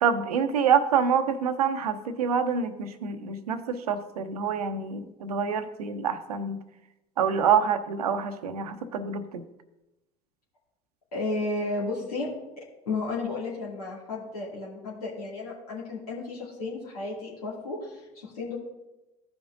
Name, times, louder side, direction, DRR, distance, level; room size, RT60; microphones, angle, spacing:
voice 1, 0.0-6.6 7.2-9.4, right 6 dB, 85° right, 9 dB, 0.8 m, -26 dB
voice 2, 11.1-18.5, left 3 dB, 80° left, -5 dB, 2.3 m, -33 dB
15.5 x 5.2 x 2.6 m, 0.98 s
hypercardioid pair, 75°, 19 cm